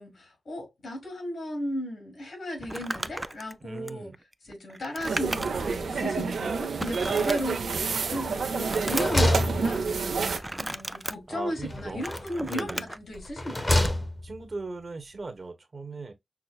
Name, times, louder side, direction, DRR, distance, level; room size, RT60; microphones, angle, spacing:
voice 1, 0.0-4.1 4.5-9.9 10.6-13.8, left 1 dB, 80° left, 2.3 m, -35 dB
Crumpling crinkling, 2.6-5.8 6.2-6.3 6.8-7.9 8.3-9.3 10.3-11.1 11.8-13.0 13.8-14.0, right 1 dB, 20° right, 0.3 m, -35 dB
voice 2, 3.6-4.2 11.3-12.1 12.4-12.9 14.2-16.1, right 3 dB, 50° right, 1.0 m, -38 dB
sound 1, 5.0-10.4, right 5 dB, 90° right, 0.6 m, -29 dB
sound 2, 7.9-8.4 8.7-10.3 11.6-12.4 13.1-14.4, left 1 dB, 25° left, 1.1 m, -28 dB
6.0 x 2.1 x 2.3 m
wide cardioid pair, 70°, 0 cm